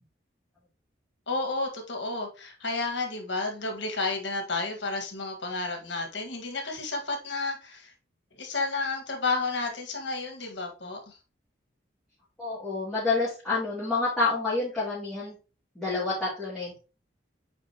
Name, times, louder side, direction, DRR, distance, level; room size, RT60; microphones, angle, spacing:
voice 1, 1.3-7.9 8.3-11.2, left 3 dB, 70° left, 1.7 m, -31 dB
voice 2, 12.4-15.3 15.7-16.8, left 3 dB, ahead, 2.5 m, -28 dB
8.8 x 4.3 x 2.9 m
head